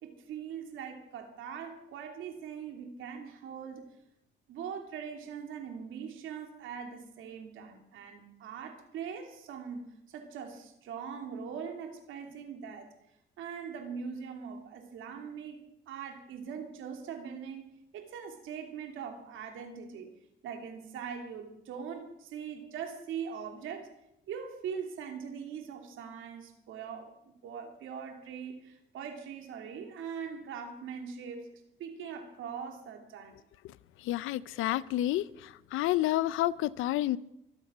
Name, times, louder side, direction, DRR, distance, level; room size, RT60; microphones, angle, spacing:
voice 1, 0.0-3.9 4.5-12.9 13.4-20.1 20.4-23.9 24.3-33.3, right 7 dB, 85° right, 4 dB, 2.9 m, -41 dB
voice 2, 34.0-37.2, left 15 dB, 90° left, 19 dB, 0.6 m, -30 dB
24.0 x 8.3 x 6.2 m, 0.82 s
cardioid pair, 90°, 20 cm